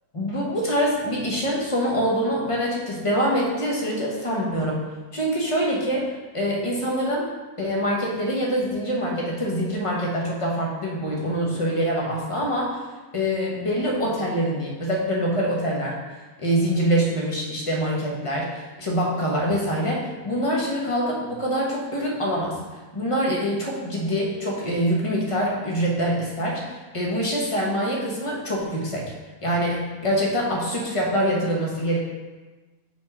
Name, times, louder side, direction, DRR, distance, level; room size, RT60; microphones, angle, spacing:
voice 1, 0.1-4.8 5.1-6.1 6.3-7.2 7.6-12.8 13.1-16.0 16.4-22.6 22.9-29.1 29.4-32.0, equal, 25° left, -3 dB, 1.1 m, -25 dB
4.9 x 4.1 x 5.4 m, 1.3 s
omnidirectional pair, 1.5 m